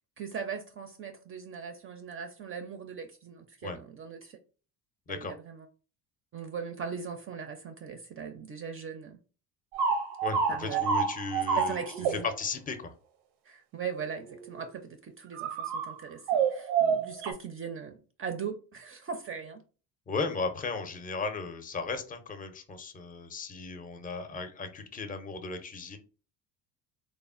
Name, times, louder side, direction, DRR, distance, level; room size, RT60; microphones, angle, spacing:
voice 1, 0.2-4.4 5.1-5.7 6.3-9.2 10.5-10.8 11.6-12.3 13.4-19.6, right 6 dB, 35° right, 0.4 m, -39 dB
sound 1, 9.7-12.4 14.3-14.6 15.4-15.9 16.3-17.3, right 6 dB, 90° right, 0.6 m, -28 dB
voice 2, 10.2-11.8 12.1-12.9 20.1-26.0, left 4 dB, 20° left, 0.5 m, -35 dB
3.1 x 2.1 x 2.4 m
supercardioid pair, 75°, 42 cm